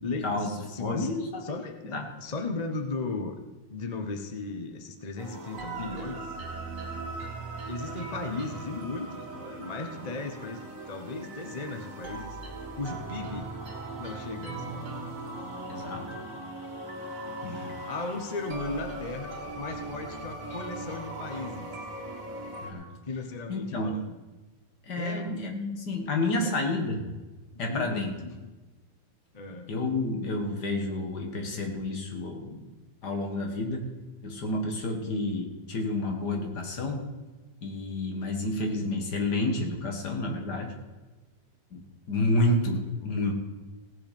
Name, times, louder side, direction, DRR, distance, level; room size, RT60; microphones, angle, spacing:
voice 1, 0.0-1.1 1.4-3.3 3.7-6.2 7.7-12.4 12.7-13.5 14.0-15.0 17.3-21.8 23.1-24.2 25.0-25.4 26.4-26.5 27.5-28.3 29.3-29.7 42.7-42.8, left 3 dB, 30° left, 5 dB, 0.8 m, -36 dB
voice 2, 0.8-1.4 1.9-2.0 15.7-16.1 17.4-17.7 22.6-22.9 23.5-24.0 24.9-27.0 27.6-28.1 29.7-32.7 33.0-33.9 34.2-37.0 37.6-40.7 41.7-41.8 42.1-43.3, left 2 dB, 60° left, 2 dB, 2.3 m, -30 dB
sound 1, 5.2-22.7, right 2 dB, 45° right, 2.3 m, -39 dB
17.5 x 8.0 x 5.3 m, 1.2 s
omnidirectional pair, 2.1 m